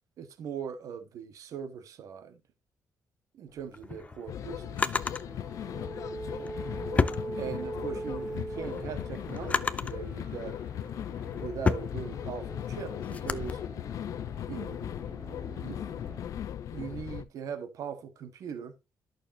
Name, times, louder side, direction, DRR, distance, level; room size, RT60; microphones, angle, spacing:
voice 1, 0.2-2.4 3.3-5.0 7.3-10.6 11.3-13.6 14.5-15.0 15.6-15.8 16.7-18.7, right 7 dB, 70° right, 1.5 m, -40 dB
sound 1, 3.5-16.3, right 2 dB, 20° right, 1.0 m, -43 dB
Drawer open or close, 3.6-5.2 6.3-7.9 8.4-10.0 10.7-13.5, left 4 dB, 25° left, 0.5 m, -32 dB
sound 2, 4.3-17.2, left 10 dB, 70° left, 0.6 m, -38 dB
11.5 x 6.6 x 2.8 m
cardioid pair, 155°, 6 cm